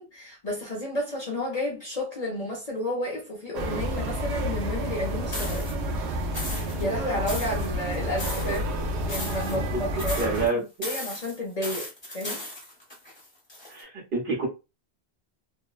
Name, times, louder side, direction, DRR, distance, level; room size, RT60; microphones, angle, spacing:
voice 1, 0.0-5.7 6.5-8.6 9.0-12.4, left 1 dB, 45° left, 0.6 m, -32 dB
sound 1, 3.5-10.5, equal, 80° right, 0.9 m, -30 dB
sound 2, 5.3-5.7 6.3-6.8 7.3-8.6 9.0-9.7 10.0-10.5 10.8-13.8, left 1 dB, 25° left, 0.9 m, -36 dB
voice 2, 9.5-9.8 10.2-10.6 13.7-14.5, right 3 dB, 55° right, 1.0 m, -28 dB
2.6 x 2.0 x 2.3 m
omnidirectional pair, 1.1 m